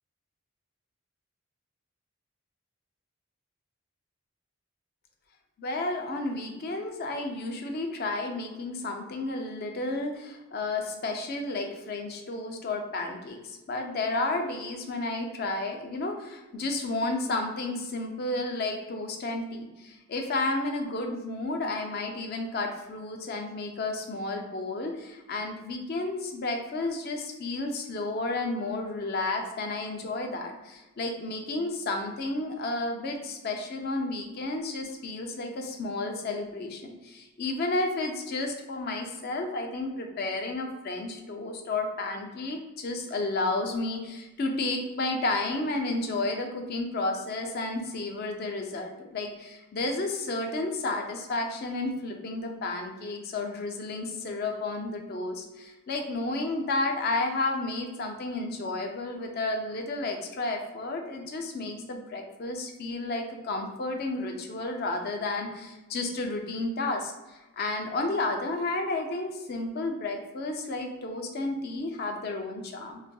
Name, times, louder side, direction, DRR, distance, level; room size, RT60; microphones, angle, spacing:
voice 1, 5.6-73.0, left 2 dB, 45° left, 3 dB, 0.4 m, -32 dB
4.0 x 2.6 x 2.2 m, 1.1 s
head